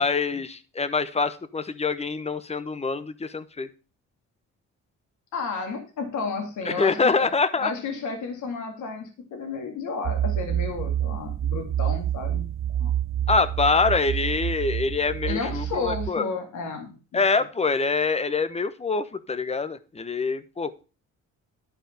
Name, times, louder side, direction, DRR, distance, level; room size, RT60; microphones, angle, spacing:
voice 1, 0.0-3.7 6.6-7.7 13.3-16.2 17.1-20.8, left 4 dB, 20° left, 13 dB, 1.0 m, -25 dB
voice 2, 5.3-7.3 7.6-12.5 12.8-12.9 15.3-17.0, left 4 dB, 75° left, 5 dB, 2.2 m, -32 dB
sound 1, 10.0-16.1, right 11 dB, 45° right, 0.5 m, -28 dB
11.5 x 5.0 x 6.5 m, 0.34 s
cardioid pair, 90°, 30 cm